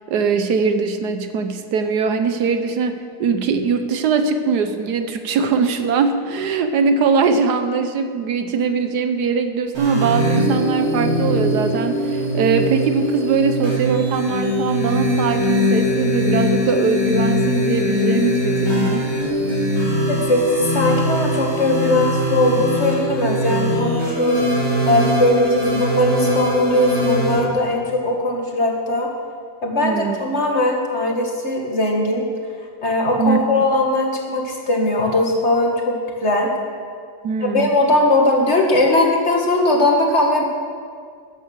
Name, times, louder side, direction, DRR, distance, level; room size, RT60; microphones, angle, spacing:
voice 1, 0.1-19.1 29.8-30.2 33.2-33.4 37.2-37.7, right 5 dB, 75° right, 8 dB, 1.4 m, -21 dB
sound 1, 9.7-27.4, equal, 60° right, 4.8 m, -21 dB
voice 2, 20.1-24.4 24.9-29.1 29.6-32.3 32.8-36.5 37.4-40.4, left 2 dB, 40° left, 0 dB, 2.2 m, -19 dB
14.0 x 10.0 x 6.6 m, 2.1 s
omnidirectional pair, 1.8 m